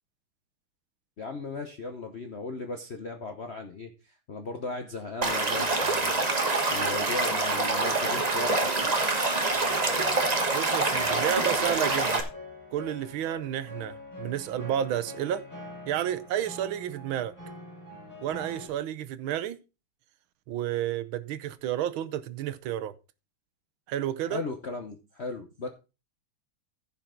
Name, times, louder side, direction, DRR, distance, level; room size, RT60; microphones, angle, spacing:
voice 1, 1.2-6.2 6.7-8.9 24.3-25.7, left 3 dB, 55° left, 0.7 m, -37 dB
Stream / Liquid, 5.2-12.2, right 3 dB, 25° right, 1.1 m, -26 dB
sound 1, 9.5-18.7, left 2 dB, 25° left, 5.0 m, -44 dB
voice 2, 10.5-12.3 12.7-15.4 15.9-17.3 18.2-19.6 20.5-22.9 23.9-24.4, right 11 dB, 75° right, 1.4 m, -31 dB
15.0 x 5.8 x 3.8 m
omnidirectional pair, 2.4 m